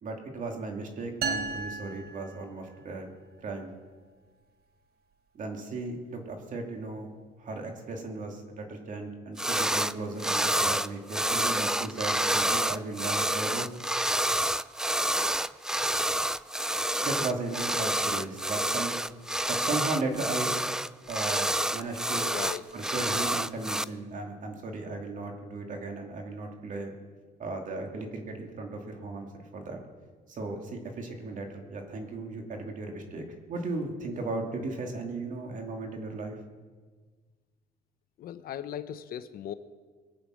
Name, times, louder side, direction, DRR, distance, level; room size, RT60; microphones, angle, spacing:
voice 1, 0.0-3.1 3.4-3.7 5.3-7.1 7.4-13.7 17.0-18.9 19.5-20.5 21.1-22.3 22.7-26.9 27.4-29.3 29.5-29.8 30.3-36.4, right 3 dB, 50° right, 3 dB, 2.5 m, -36 dB
sound 1, 1.2-3.0, right 4 dB, 65° right, 1.2 m, -35 dB
sound 2, 9.4-9.9 10.2-23.8, right 1 dB, 5° right, 0.4 m, -28 dB
voice 2, 22.2-22.6 38.2-39.5, left 10 dB, 60° left, 12 dB, 0.8 m, -38 dB
22.5 x 8.7 x 6.3 m, 1.5 s
cardioid pair, 110°, 17 cm